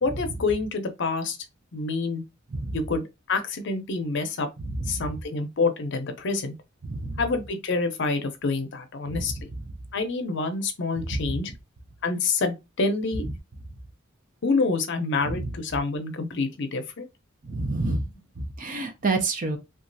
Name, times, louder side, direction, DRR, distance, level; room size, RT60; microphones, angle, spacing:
voice 1, 0.0-1.4 1.7-2.2 2.7-4.5 4.9-6.5 7.2-9.5 9.9-11.5 12.0-13.2 14.4-17.1, left 3 dB, 60° left, 0.6 m, -27 dB
voice 2, 17.5-18.0 18.6-19.6, right 3 dB, 40° right, 0.6 m, -27 dB
3.0 x 2.3 x 2.6 m
head